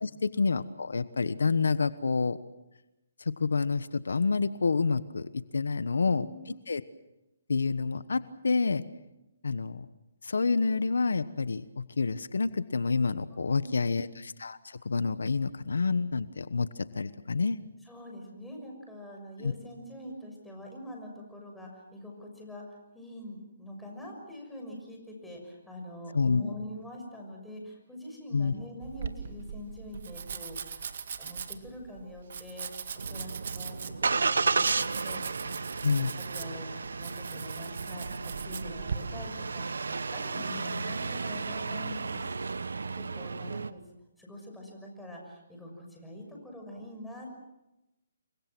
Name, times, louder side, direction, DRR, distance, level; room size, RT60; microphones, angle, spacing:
voice 1, 0.0-2.4 3.2-6.3 6.7-6.8 7.5-8.8 9.4-9.8 10.2-16.7 16.9-17.6 19.4-19.5 26.1-26.5 28.3-28.5 35.8-36.1, left 4 dB, 85° left, 15 dB, 1.1 m, -28 dB
voice 2, 5.9-6.4 13.4-14.0 17.8-30.9 31.2-42.3 42.9-43.8 44.2-47.3, left 1 dB, 5° left, -1 dB, 6.3 m, -44 dB
Domestic sounds home sounds, 28.8-39.0, right 7 dB, 60° right, 1.9 m, -40 dB
Engine starting, 33.0-43.7, right 4 dB, 90° right, 1.1 m, -33 dB
29.0 x 23.5 x 6.2 m, 0.94 s
hypercardioid pair, 160°, 0 cm